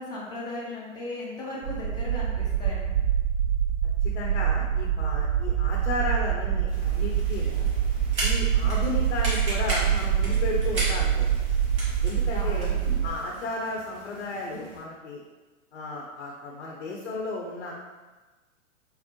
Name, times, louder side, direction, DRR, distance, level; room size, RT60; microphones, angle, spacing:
voice 1, 0.0-3.0 8.6-9.0 12.3-12.7 16.9-17.0, left 2 dB, 10° left, -6 dB, 0.5 m, -37 dB
sound 1, 1.6-13.1, right 9 dB, 55° right, 0.5 m, -25 dB
voice 2, 4.0-7.7 8.2-11.4 12.0-12.8 13.0-15.2 15.7-17.7, left 2 dB, 55° left, -2 dB, 0.7 m, -34 dB
sound 2, 6.7-14.8, right 1 dB, 30° right, 1.5 m, -37 dB
4.3 x 2.0 x 2.7 m, 1.2 s
figure-of-eight pair, 110°, 39 cm